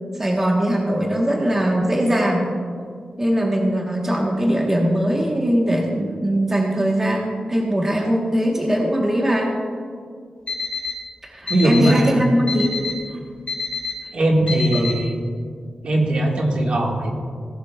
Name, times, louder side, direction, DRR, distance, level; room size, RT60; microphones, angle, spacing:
voice 1, 0.2-2.5 3.2-9.5 11.2-12.7 14.7-14.9, equal, 15° right, -1 dB, 1.1 m, -20 dB
Alarm, 10.5-10.9 11.5-11.9 12.5-12.9 13.5-13.9 14.5-14.9, left 5 dB, 45° left, 2.6 m, -26 dB
voice 2, 11.5-12.2 14.1-15.1 15.8-17.1, right 1 dB, 50° right, 0 dB, 1.7 m, -19 dB
18.0 x 11.5 x 2.3 m, 2.2 s
wide cardioid pair, 160°, 2 cm